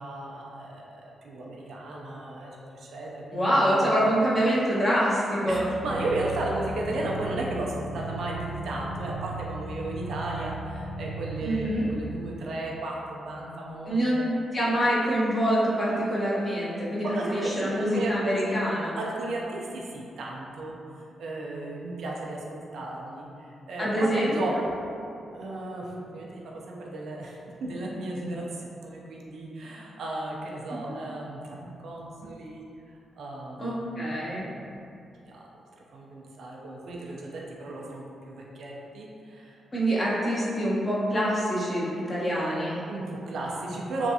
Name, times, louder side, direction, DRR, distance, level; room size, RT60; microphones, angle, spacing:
voice 1, 0.0-3.7 5.4-14.3 16.8-18.6 19.0-20.7 21.2-24.7 25.3-32.7 33.2-34.6 35.3-39.6 42.9-44.1, right 2 dB, 70° right, -3 dB, 0.4 m, -35 dB
voice 2, 3.3-5.7 11.4-11.9 13.9-14.2 14.5-19.0 23.8-24.4 33.6-34.4 39.7-42.8, equal, 35° left, -7 dB, 1.0 m, -25 dB
sound 1, 5.5-11.9, right 2 dB, 10° right, 0.6 m, -37 dB
3.2 x 2.5 x 2.7 m, 2.6 s
supercardioid pair, 45°, 0 cm